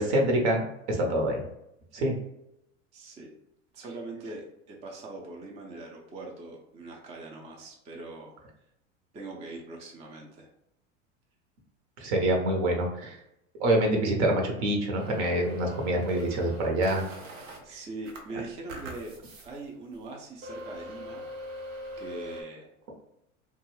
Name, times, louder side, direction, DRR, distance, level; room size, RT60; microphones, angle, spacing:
voice 1, 0.0-1.4 1.9-2.2 12.0-13.2 13.6-17.0, right 1 dB, 60° right, 2 dB, 0.9 m, -26 dB
voice 2, 2.9-3.3 3.7-8.4 9.1-10.5 17.6-19.1 19.4-21.2 22.0-22.7, right 2 dB, 20° right, -1 dB, 0.4 m, -42 dB
sound 1, 15.0-17.6 18.0-19.5 19.9-20.0 20.4-22.4, equal, 90° right, 0.8 m, -42 dB
2.5 x 2.3 x 3.1 m, 0.81 s
hypercardioid pair, 105°, 38 cm